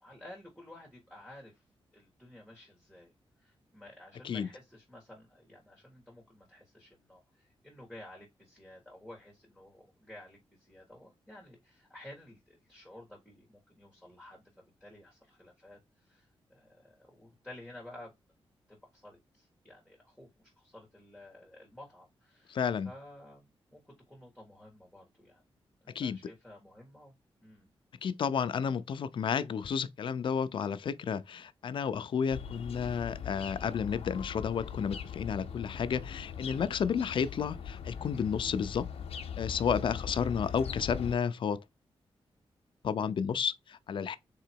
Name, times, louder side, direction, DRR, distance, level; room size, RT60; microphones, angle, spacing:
voice 1, 0.0-1.6 1.9-3.1 3.4-18.1 18.7-22.6 22.8-25.4 25.8-27.1 27.4-27.7 40.0-40.3, left 1 dB, 5° right, 1.6 m, -53 dB
voice 2, 22.5-22.9 25.9-26.2 28.0-38.9 39.4-41.6 42.8-44.2, left 7 dB, 55° left, 0.5 m, -32 dB
sound 1, 32.3-41.2, left 7 dB, 85° left, 0.8 m, -40 dB
3.9 x 2.8 x 4.5 m
wide cardioid pair, 145°, 10 cm